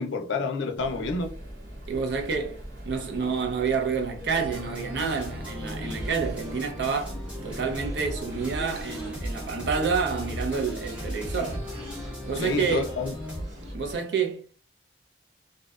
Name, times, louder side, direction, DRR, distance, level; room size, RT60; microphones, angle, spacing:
voice 1, 0.0-1.3 12.3-13.2, left 4 dB, 75° left, 0.4 m, -29 dB
sound 1, 0.8-14.0, equal, 45° right, 1.0 m, -42 dB
voice 2, 1.9-2.6 2.8-11.7 12.3-12.9 13.7-14.5, right 5 dB, 65° right, 0.5 m, -29 dB
sound 2, 4.3-13.5, equal, 5° right, 0.8 m, -37 dB
sound 3, 5.6-13.7, left 1 dB, 90° right, 1.4 m, -45 dB
2.6 x 2.1 x 2.3 m
head